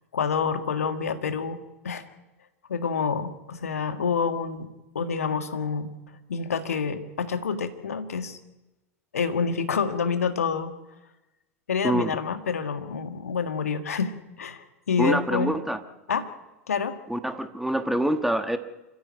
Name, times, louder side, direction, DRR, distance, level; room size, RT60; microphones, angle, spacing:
voice 1, 0.1-1.6 1.8-2.1 2.7-5.9 6.3-8.4 9.1-10.7 11.7-15.5 16.1-16.3 16.7-17.0, left 6 dB, 75° left, 8 dB, 1.7 m, -28 dB
voice 2, 11.8-12.1 15.0-15.8 17.1-18.6, right 1 dB, ahead, 8 dB, 1.3 m, -25 dB
27.0 x 15.0 x 7.7 m, 1.0 s
figure-of-eight pair, 90°, 8 cm